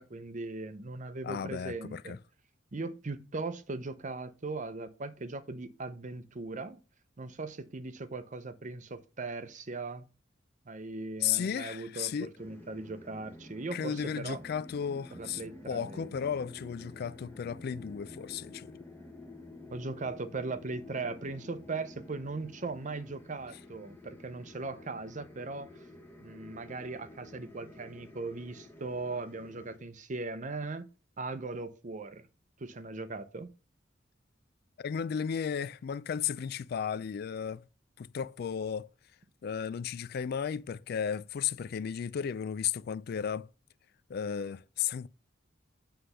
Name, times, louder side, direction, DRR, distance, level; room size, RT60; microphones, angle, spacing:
voice 1, 0.0-2.2 2.7-6.8 7.2-10.1 10.7-14.4 15.1-16.1 19.7-25.7 26.2-30.9 31.2-32.2 32.6-33.5, right 3 dB, 40° right, 0.7 m, -39 dB
voice 2, 1.2-2.2 11.2-12.3 13.7-18.7 34.8-37.6 38.0-38.9 39.4-43.5 44.1-45.1, left 7 dB, 55° left, 0.3 m, -34 dB
sound 1, 12.4-29.8, left 2 dB, 10° left, 1.0 m, -50 dB
7.9 x 3.4 x 5.5 m
head